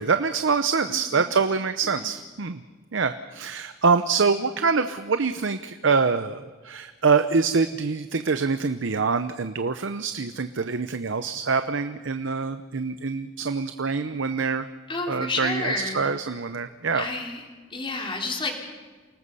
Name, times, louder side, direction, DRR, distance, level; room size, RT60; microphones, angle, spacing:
voice 1, 0.0-2.6 2.9-14.7 15.1-17.0, right 5 dB, 75° right, 10 dB, 0.8 m, -25 dB
voice 2, 0.9-1.3 2.0-2.1 14.9-16.0 16.9-17.4 17.7-18.5, left 3 dB, 25° left, 1 dB, 3.1 m, -30 dB
29.0 x 19.0 x 5.6 m, 1.4 s
head